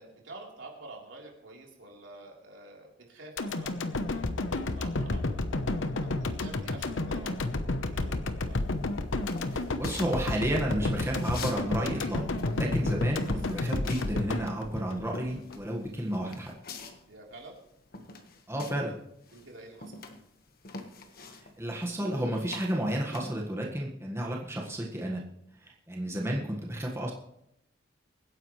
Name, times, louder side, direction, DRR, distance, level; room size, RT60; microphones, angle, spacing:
voice 1, 0.0-5.5 6.0-8.6 12.9-13.4 17.1-17.5 19.3-19.9, right 2 dB, 75° right, -1 dB, 3.8 m, -49 dB
sound 1, 3.4-15.6 16.0-16.1, left 2 dB, 80° left, 1.0 m, -31 dB
sound 2, 8.6-11.6 11.9-19.0 19.2-23.3, left 3 dB, 50° left, 1.4 m, -45 dB
voice 2, 9.5-16.5 18.5-19.0 21.6-25.2 25.6-27.1, right 1 dB, 15° right, -2 dB, 1.6 m, -32 dB
24.5 x 10.0 x 3.2 m, 0.80 s
head